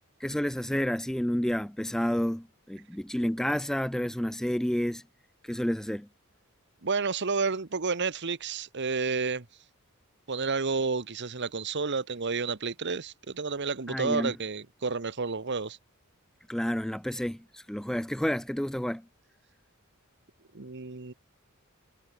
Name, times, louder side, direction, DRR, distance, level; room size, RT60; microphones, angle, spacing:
voice 1, 0.2-5.0 5.4-6.1 13.9-14.3 16.5-19.0, equal, 5° left, 0.3 m, -30 dB
voice 2, 6.8-9.5 10.3-15.8 20.5-21.1, right 4 dB, 55° right, 1.2 m, -30 dB
head